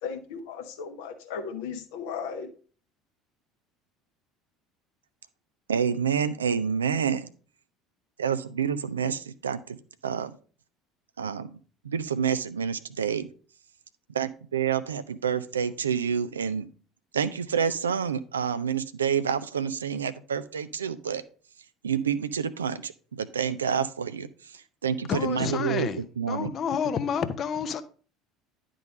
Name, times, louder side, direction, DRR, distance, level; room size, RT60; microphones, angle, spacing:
voice 1, 0.0-2.5, left 6 dB, 65° left, 1.1 m, -36 dB
voice 2, 5.7-7.3 8.2-9.8 10.0-10.4 11.2-11.6 11.8-13.3 14.1-16.7 17.1-21.2 21.8-25.9 26.2-26.5, right 7 dB, 75° right, 0.4 m, -28 dB
voice 3, 25.1-27.8, left 7 dB, 40° left, 0.7 m, -29 dB
10.5 x 3.8 x 4.9 m
figure-of-eight pair, 65°, 0 cm